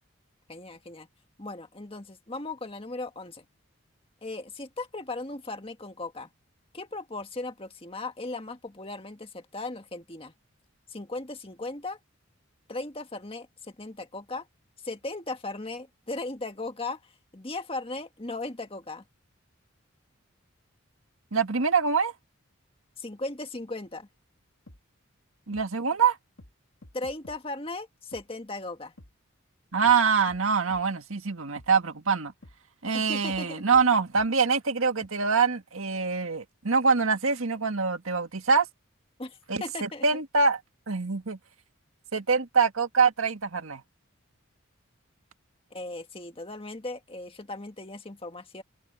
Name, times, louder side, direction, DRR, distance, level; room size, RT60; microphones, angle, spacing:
voice 1, 0.5-1.1 1.4-3.5 4.2-6.3 6.7-10.3 10.9-12.0 12.7-14.5 14.8-19.0 23.0-24.1 26.9-28.9 32.9-33.6 39.2-40.2 45.7-48.6, left 2 dB, 25° left, 1.7 m, -37 dB
voice 2, 21.3-22.1 25.5-26.2 29.7-32.3 32.8-38.7 39.5-40.6 40.9-41.4 42.1-43.8, right 5 dB, 75° right, 1.8 m, -24 dB
sound 1, 24.7-24.8 25.5-25.7 26.4-26.5 26.8-27.4 28.1-28.2 29.0-29.1 29.8-30.0 30.3-30.4 30.7-30.8 31.6-31.7 32.4-32.6 33.3-33.4 33.7-33.8 34.1-34.3 35.0-35.1, left 1 dB, 65° left, 2.0 m, -50 dB
open air
head